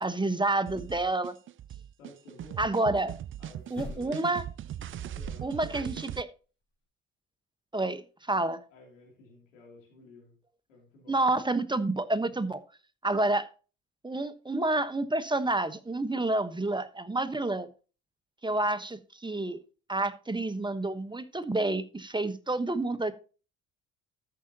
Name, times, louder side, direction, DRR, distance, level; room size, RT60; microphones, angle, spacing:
voice 1, 0.0-1.3 2.6-3.1 3.7-4.4 5.4-6.3 7.7-8.6 11.1-12.6 13.0-13.5 14.0-17.7 18.4-19.6 19.9-23.1, right 2 dB, 10° right, 1.1 m, -29 dB
sound 1, 0.7-6.2, right 11 dB, 35° right, 0.4 m, -40 dB
voice 2, 2.0-2.6 3.4-4.3 4.8-6.0 8.7-10.3 10.7-11.2, left 2 dB, 90° left, 3.0 m, -53 dB
sound 2, 3.7-4.4 4.9-5.7 6.0-6.1, left 1 dB, 30° left, 4.1 m, -43 dB
13.5 x 6.7 x 2.8 m
hypercardioid pair, 50°, 37 cm